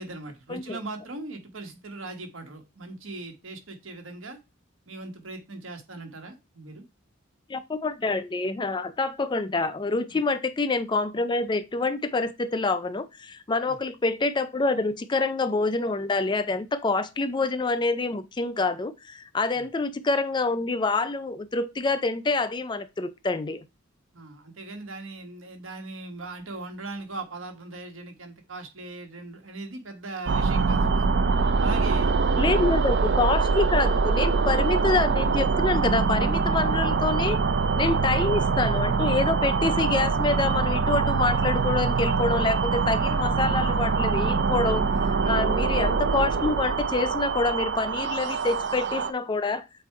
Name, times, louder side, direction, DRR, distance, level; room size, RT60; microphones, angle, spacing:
voice 1, 0.0-4.4 4.9-6.8 10.1-10.2 13.7-13.8 19.5-19.6 24.1-31.1 31.6-32.2 37.7-37.8 45.2-45.4, right 3 dB, 70° right, 1.5 m, -39 dB
voice 2, 7.5-23.6 32.4-37.4 37.8-49.7, left 3 dB, 20° left, 0.4 m, -26 dB
sound 1, 30.3-49.1, right 4 dB, 55° right, 0.5 m, -24 dB
7.8 x 2.6 x 4.6 m
head